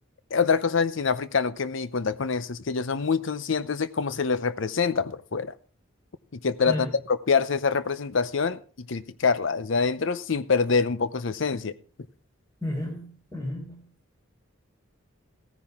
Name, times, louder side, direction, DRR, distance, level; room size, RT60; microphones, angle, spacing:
voice 1, 0.3-5.5 6.3-11.7, left 5 dB, 65° left, 0.7 m, -25 dB
voice 2, 12.6-13.8, left 1 dB, 15° left, 3.8 m, -32 dB
15.5 x 10.0 x 3.6 m
head